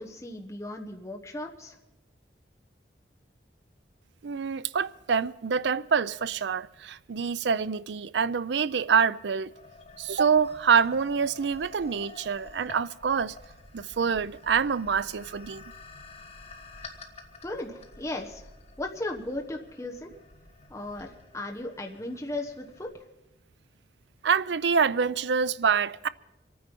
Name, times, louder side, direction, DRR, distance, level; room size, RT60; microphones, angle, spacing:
voice 1, 0.0-1.7 17.4-18.4 18.8-20.1 20.7-22.9, left 1 dB, 15° left, 1.1 m, -36 dB
voice 2, 4.2-9.5 10.0-13.3 13.7-15.6 24.2-26.1, right 6 dB, 80° right, 0.5 m, -26 dB
sound 1, 9.5-22.9, left 3 dB, 35° left, 1.5 m, -50 dB
25.5 x 9.4 x 5.4 m
head